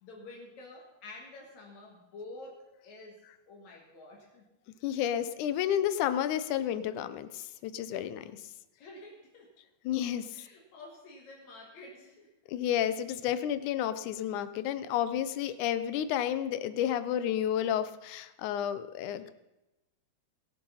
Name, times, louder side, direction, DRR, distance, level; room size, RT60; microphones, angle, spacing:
voice 1, 0.0-4.4 8.0-8.1 8.8-9.5 10.3-12.3, left 2 dB, 65° left, 0 dB, 3.0 m, -49 dB
voice 2, 4.8-8.3 9.8-10.5 12.5-19.3, left 10 dB, 85° left, 13 dB, 2.2 m, -31 dB
20.0 x 7.5 x 5.6 m, 0.97 s
omnidirectional pair, 3.5 m